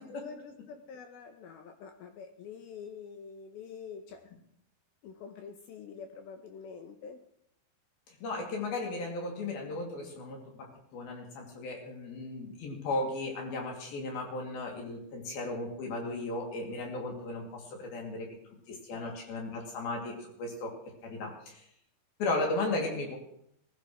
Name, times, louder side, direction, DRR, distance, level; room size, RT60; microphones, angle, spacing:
voice 1, 0.0-4.3 5.0-7.2 18.7-19.2, left 6 dB, 75° left, 5 dB, 2.3 m, -46 dB
voice 2, 8.2-18.3 18.9-21.6 22.2-23.2, left 2 dB, 60° left, 0 dB, 4.1 m, -35 dB
20.5 x 14.5 x 3.1 m, 0.72 s
omnidirectional pair, 5.3 m